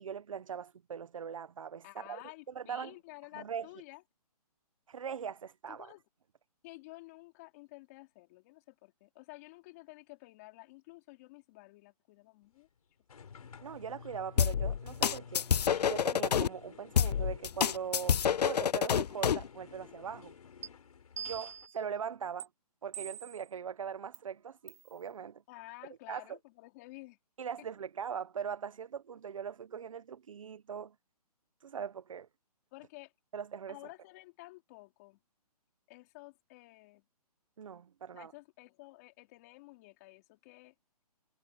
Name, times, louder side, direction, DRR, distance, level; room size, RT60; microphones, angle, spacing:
voice 1, 0.0-2.9 3.3-3.7 4.9-5.9 13.6-15.5 15.8-20.3 21.2-22.5 22.8-25.4 26.1-26.4 27.4-30.9 31.6-32.3 33.3-33.8 37.6-38.3, right 7 dB, 55° right, 1.0 m, -41 dB
voice 2, 1.8-4.0 5.7-6.0 6.6-12.7 25.5-27.2 32.7-33.1 33.7-35.2 35.9-37.0 38.1-40.7, left 22 dB, 25° left, 4.3 m, -52 dB
sound 1, 13.1-21.7, left 6 dB, 65° left, 4.1 m, -52 dB
sound 2, 14.4-16.5 17.0-19.5, left 8 dB, 85° left, 0.5 m, -28 dB
sound 3, 20.6-20.7 21.2-21.8 22.4-22.5 22.9-23.5 24.1-24.2 24.7-24.9, right 9 dB, 25° right, 0.4 m, -43 dB
hypercardioid pair, 165°, 20 cm